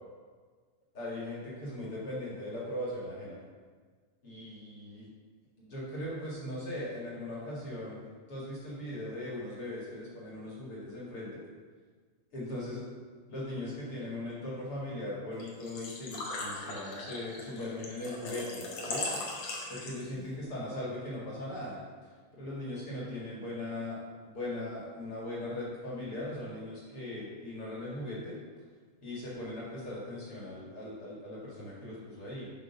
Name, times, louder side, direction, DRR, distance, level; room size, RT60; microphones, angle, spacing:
voice 1, 0.9-3.4 4.2-5.1 5.6-11.4 12.3-12.8 13.3-19.1 19.7-21.8 22.3-28.4 29.0-32.5, left 1 dB, 50° left, -6 dB, 1.8 m, -39 dB
Engine / Trickle dribble / Fill (with liquid), 15.4-20.2, left 2 dB, 85° left, 1.4 m, -39 dB
10.0 x 3.8 x 5.7 m, 1.5 s
omnidirectional pair, 5.0 m